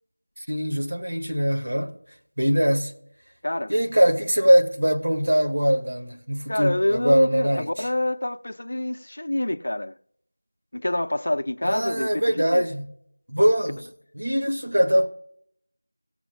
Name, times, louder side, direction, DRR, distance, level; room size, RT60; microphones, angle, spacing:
voice 1, 0.5-1.9 2.4-2.9 3.7-7.7 11.6-12.9 13.3-13.8 14.1-15.1, equal, 55° right, 1.6 m, -22 dB
voice 2, 6.5-9.9 10.7-12.7, left 1 dB, 45° left, 0.6 m, -27 dB
17.5 x 7.0 x 2.2 m
figure-of-eight pair, 175°, 0 cm